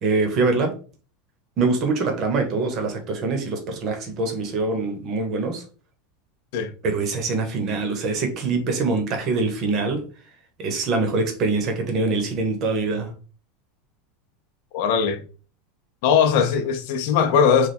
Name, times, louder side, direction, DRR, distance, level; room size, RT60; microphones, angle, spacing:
voice 1, 0.0-0.7 1.6-5.6 6.8-10.0 10.6-13.1, right 3 dB, 35° right, 0.9 m, -24 dB
voice 2, 14.7-15.2 16.0-17.7, left 7 dB, 55° left, 0.6 m, -19 dB
3.2 x 2.2 x 4.2 m
supercardioid pair, 160°, 0 cm